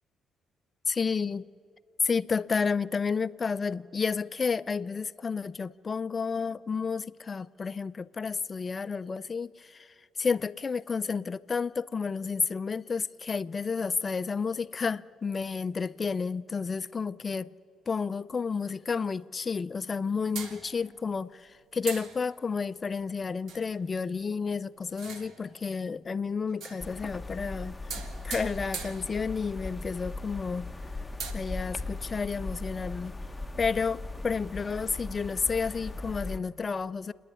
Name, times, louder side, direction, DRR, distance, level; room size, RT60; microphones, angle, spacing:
voice 1, 0.9-1.4 2.0-9.9 10.2-17.5 17.9-30.7 31.3-33.1 33.6-37.1, left 5 dB, 40° left, 0.5 m, -31 dB
sound 1, 20.4-21.1 21.9-22.6 23.5-23.8 24.9-25.6 26.5-27.2 27.9-29.6 30.1-30.2 30.4-30.5 31.0-31.3, right 6 dB, 75° right, 1.6 m, -41 dB
sound 2, 26.8-36.4, left 2 dB, 15° left, 1.0 m, -39 dB
27.0 x 10.0 x 9.9 m
supercardioid pair, 65°, 0 cm